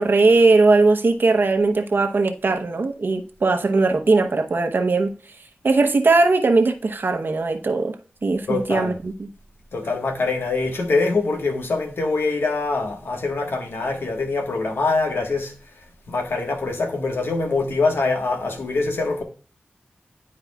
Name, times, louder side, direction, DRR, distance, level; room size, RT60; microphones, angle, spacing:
voice 1, 0.0-5.1 5.6-7.9 8.2-9.3, right 3 dB, 65° right, 0.9 m, -19 dB
voice 2, 8.5-9.0 9.7-15.5 16.1-19.2, left 3 dB, 85° left, 1.4 m, -24 dB
11.0 x 4.7 x 2.3 m
wide cardioid pair, 65°, 4 cm